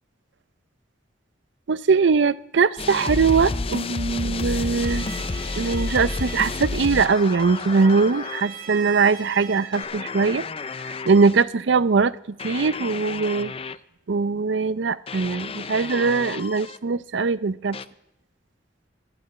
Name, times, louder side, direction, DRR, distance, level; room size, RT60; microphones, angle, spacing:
voice 1, 1.7-5.1 5.6-10.4 10.8-12.1 12.4-13.5 14.1-17.8, right 4 dB, 75° right, 17 dB, 0.5 m, -21 dB
sound 1, 2.8-8.4 9.7-11.4 12.4-13.8 15.1-16.8 17.7-17.9, left 3 dB, 30° left, 0.5 m, -31 dB
Bowed string instrument, 4.8-9.8, right 7 dB, 55° right, 2.5 m, -41 dB
12.0 x 12.0 x 8.6 m, 0.81 s
head